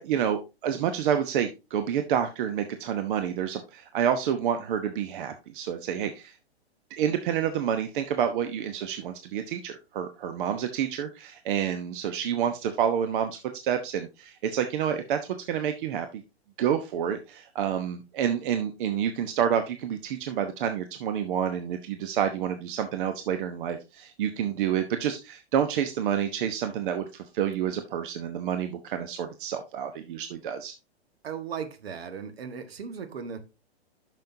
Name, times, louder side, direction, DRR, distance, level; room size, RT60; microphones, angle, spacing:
voice 1, 0.0-6.3 6.9-15.2 15.5-16.2 16.6-30.7, right 9 dB, 55° right, 1.0 m, -28 dB
voice 2, 31.2-33.4, right 6 dB, 70° right, 1.6 m, -37 dB
10.5 x 6.5 x 2.7 m
hypercardioid pair, 120°, 32 cm